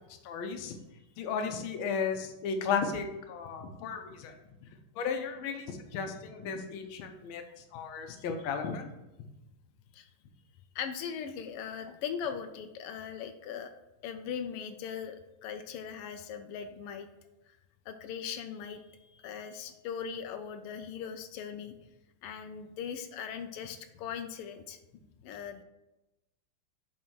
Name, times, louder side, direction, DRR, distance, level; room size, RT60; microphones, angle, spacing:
voice 1, 0.2-0.7 1.2-4.3 5.0-7.4 7.7-8.9, left 6 dB, 70° left, 6 dB, 1.5 m, -34 dB
voice 2, 10.7-13.7 14.0-17.1 17.9-21.7 22.2-24.8 25.2-25.6, left 7 dB, 90° left, 7 dB, 1.5 m, -39 dB
8.8 x 3.3 x 4.6 m, 0.98 s
omnidirectional pair, 2.4 m